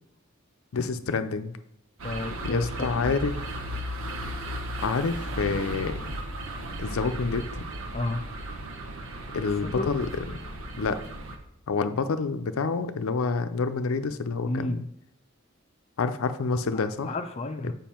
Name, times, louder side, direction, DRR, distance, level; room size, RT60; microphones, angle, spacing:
voice 1, 0.7-1.5 2.4-3.4 4.8-6.0 6.8-7.6 9.3-10.1 10.8-11.0 11.7-14.8 16.0-17.1 17.6-17.7, left 4 dB, 80° left, 9 dB, 0.5 m, -28 dB
voice 2, 2.0-3.2 7.9-8.2 9.4-9.9 14.4-14.8 16.7-17.7, left 2 dB, 30° left, 6 dB, 0.5 m, -32 dB
sound 1, 2.0-11.4, right 1 dB, 70° right, 0.9 m, -35 dB
7.2 x 5.4 x 4.4 m, 0.73 s
head